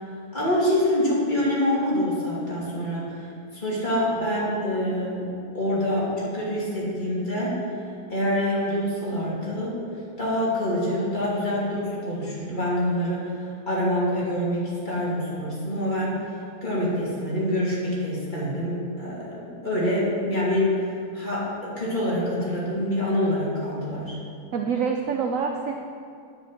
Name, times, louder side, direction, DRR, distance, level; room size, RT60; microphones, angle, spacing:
voice 1, 0.3-3.3 3.5-5.3 5.5-7.6 8.1-9.8 10.2-13.3 13.7-16.1 16.6-20.8 21.1-24.2, left 1 dB, 25° left, -7 dB, 2.5 m, -26 dB
voice 2, 24.5-25.7, right 6 dB, 70° right, 3 dB, 0.8 m, -26 dB
9.4 x 5.4 x 7.5 m, 2.4 s
omnidirectional pair, 2.0 m